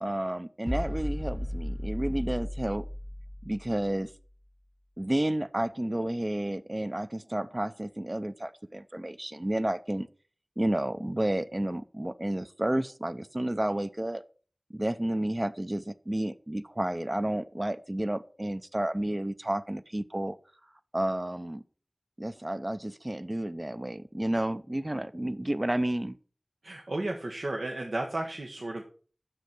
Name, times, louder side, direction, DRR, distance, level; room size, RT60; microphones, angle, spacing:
voice 1, 0.0-2.9 3.4-4.1 5.0-10.1 10.6-14.2 14.7-20.4 20.9-21.6 22.2-26.2, right 1 dB, 30° right, 0.5 m, -31 dB
sound 1, 0.7-4.1, equal, ahead, 0.8 m, -35 dB
voice 2, 26.6-28.8, right 2 dB, 85° right, 1.2 m, -33 dB
8.3 x 6.6 x 5.9 m
wide cardioid pair, 45°, 0 cm